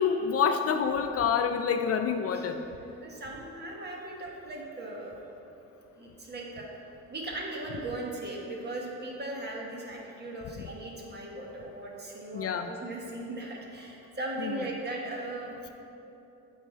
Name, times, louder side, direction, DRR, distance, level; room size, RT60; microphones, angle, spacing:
voice 1, 0.0-2.6 12.3-12.7 14.4-14.6, left 6 dB, 50° left, 7 dB, 0.4 m, -27 dB
voice 2, 3.0-5.2 6.0-6.7 7.1-15.6, right 2 dB, 35° right, -2 dB, 1.4 m, -38 dB
8.1 x 4.3 x 4.4 m, 2.9 s
cardioid pair, 90°, 30 cm